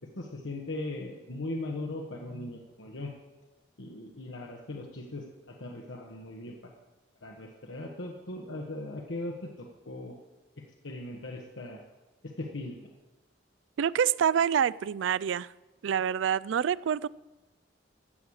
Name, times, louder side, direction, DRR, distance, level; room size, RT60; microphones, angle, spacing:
voice 1, 0.0-3.1 3.8-6.6 7.2-10.1 10.8-11.8 12.2-12.8, left 2 dB, 90° left, 1.4 m, -39 dB
voice 2, 13.8-15.5 15.8-17.1, right 8 dB, 75° right, 0.3 m, -26 dB
15.0 x 6.5 x 8.6 m
head